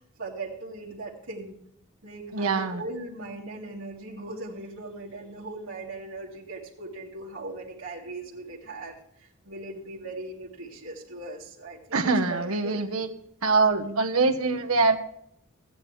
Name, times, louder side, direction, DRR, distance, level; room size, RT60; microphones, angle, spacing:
voice 1, 0.2-1.6 2.0-12.8 13.6-14.0, right 2 dB, 65° right, -6 dB, 1.8 m, -39 dB
voice 2, 2.3-2.8 11.9-13.1 13.4-15.0, right 3 dB, 85° right, 5 dB, 1.1 m, -24 dB
14.5 x 9.6 x 3.2 m, 0.72 s
head